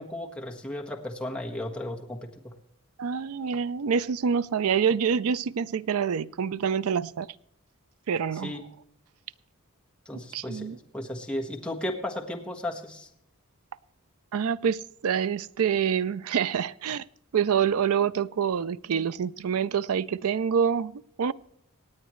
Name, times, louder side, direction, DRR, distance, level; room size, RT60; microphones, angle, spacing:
voice 1, 0.0-2.5 8.4-8.6 10.0-13.1, left 1 dB, 5° left, 1.4 m, -35 dB
voice 2, 3.0-7.3 8.1-8.6 10.1-10.8 14.3-17.0 17.3-21.3, right 7 dB, 70° right, 0.4 m, -26 dB
26.0 x 8.9 x 3.1 m
head